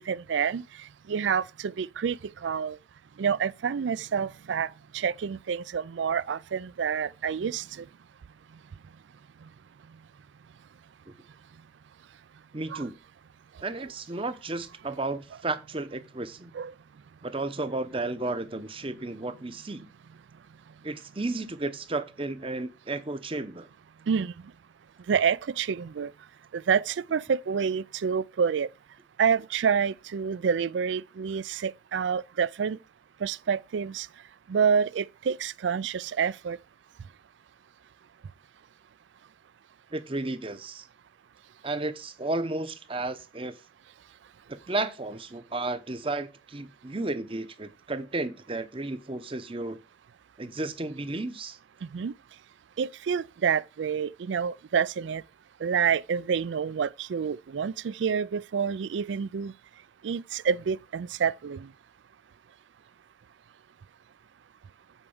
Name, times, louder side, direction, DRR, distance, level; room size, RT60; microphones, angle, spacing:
voice 1, 0.1-0.6 1.1-2.2 2.4-2.8 3.2-4.7 4.9-7.8 12.7-12.8 16.5-16.7 24.1-24.3 25.1-26.1 26.5-28.7 29.2-32.8 33.2-34.1 34.5-36.6 51.9-52.1 52.8-55.2 55.6-59.5 60.0-61.7, right 6 dB, 80° right, 0.4 m, -28 dB
voice 2, 12.5-12.9 13.6-16.5 17.2-19.9 20.8-23.7 39.9-40.8 41.6-43.6 44.5-49.8 50.4-51.6, right 2 dB, 30° right, 0.8 m, -33 dB
8.2 x 4.7 x 7.1 m
head